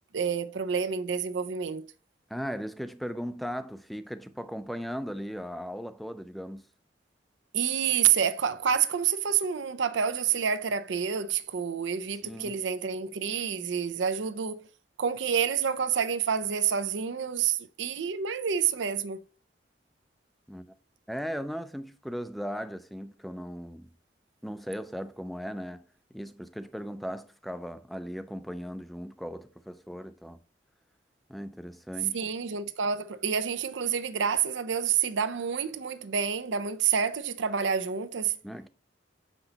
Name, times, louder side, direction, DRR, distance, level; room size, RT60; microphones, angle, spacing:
voice 1, 0.1-1.8 7.5-14.7 15.0-19.2 32.1-38.4, right 7 dB, 80° right, 0.5 m, -28 dB
voice 2, 2.3-6.7 12.2-12.6 20.5-20.7 21.1-23.9 24.4-25.8 26.1-30.4 31.3-32.2 38.4-38.7, equal, ahead, 0.4 m, -37 dB
6.6 x 6.0 x 2.9 m
head